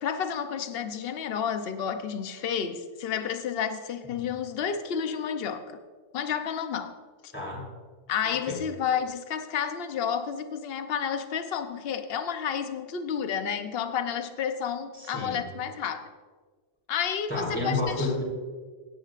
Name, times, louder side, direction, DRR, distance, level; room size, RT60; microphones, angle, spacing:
voice 1, 0.0-5.8 6.1-7.0 7.2-7.3 8.1-16.1 16.9-18.1, left 7 dB, 60° left, 9 dB, 0.9 m, -31 dB
voice 2, 8.2-8.6 15.0-15.4 17.3-18.2, left 2 dB, 10° left, -4 dB, 3.6 m, -30 dB
17.5 x 10.0 x 2.5 m, 1.5 s
omnidirectional pair, 1.2 m